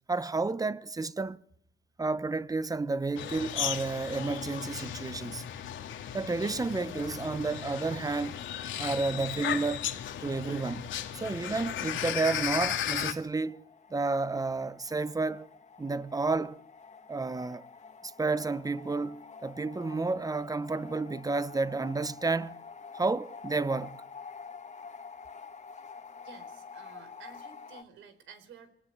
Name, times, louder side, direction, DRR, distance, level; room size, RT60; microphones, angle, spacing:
voice 1, 0.1-1.4 2.0-5.4 6.1-8.5 8.8-9.9 10.2-13.6 13.9-15.5 15.8-16.6 17.1-17.6 18.0-22.6 22.9-24.0, right 3 dB, 20° right, 1.0 m, -31 dB
sound 1, 3.2-13.1, left 10 dB, 75° left, 2.4 m, -35 dB
sound 2, 13.5-27.8, left 5 dB, 35° left, 2.3 m, -48 dB
voice 2, 26.2-28.7, right 6 dB, 80° right, 4.5 m, -52 dB
25.0 x 19.0 x 9.3 m
cardioid pair, 90°, 20 cm